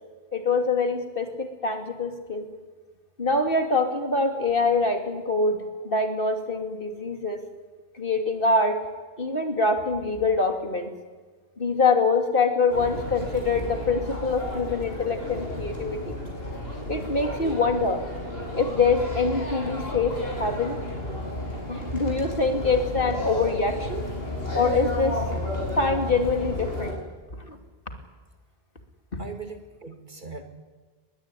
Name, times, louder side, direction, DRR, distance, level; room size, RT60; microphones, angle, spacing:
voice 1, 0.3-2.5 3.2-5.6 5.8-7.4 8.0-8.8 9.2-10.9 11.6-16.1 16.9-18.0 18.5-20.8 21.7-24.0 24.5-25.2 25.8-27.0 27.4-27.6, left 3 dB, 60° left, 5 dB, 3.0 m, -24 dB
sound 1, 12.7-26.9, left 1 dB, 75° left, 6.7 m, -32 dB
voice 2, 29.2-30.4, right 4 dB, 50° right, 5 dB, 2.6 m, -39 dB
22.5 x 21.5 x 9.9 m, 1.4 s
omnidirectional pair, 1.0 m